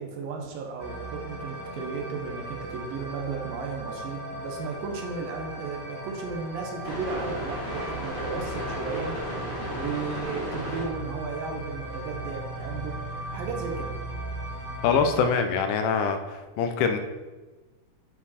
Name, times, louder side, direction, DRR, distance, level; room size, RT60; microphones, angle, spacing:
voice 1, 0.0-9.3 9.7-12.9 13.3-14.0, right 5 dB, 70° right, 2 dB, 2.6 m, -34 dB
sound 1, 0.8-15.3, right 1 dB, 55° left, 0.5 m, -36 dB
voice 2, 14.8-17.0, left 6 dB, 80° left, 7 dB, 2.5 m, -24 dB
9.4 x 5.6 x 4.2 m, 1.2 s
omnidirectional pair, 4.5 m